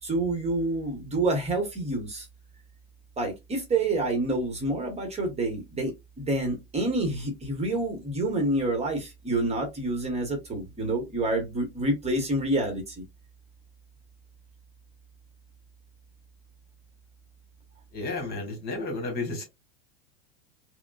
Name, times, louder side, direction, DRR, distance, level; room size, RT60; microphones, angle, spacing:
voice 1, 0.0-2.3 3.2-13.0, right 2 dB, 20° right, 1.3 m, -28 dB
voice 2, 17.9-19.4, left 2 dB, 30° left, 1.7 m, -32 dB
4.9 x 2.2 x 2.4 m
figure-of-eight pair, 85°, 31 cm